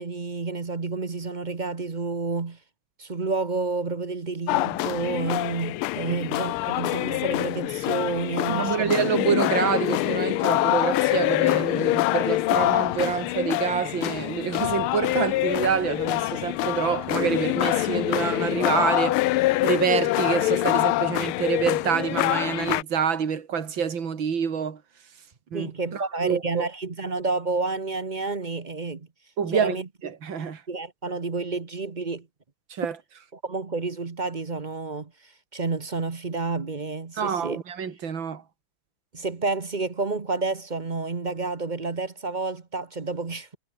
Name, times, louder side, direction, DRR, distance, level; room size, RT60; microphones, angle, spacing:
voice 1, 0.0-2.6 3.0-8.9 25.5-29.1 29.5-29.9 30.7-32.3 33.3-37.6 39.1-43.6, right 3 dB, 30° right, 0.9 m, -30 dB
sound 1, 4.5-22.8, left 17 dB, 85° left, 1.5 m, -25 dB
voice 2, 8.5-24.8 25.5-26.7 29.4-30.6 32.7-33.0 37.2-38.4, right 7 dB, 65° right, 3.1 m, -27 dB
omnidirectional pair, 2.3 m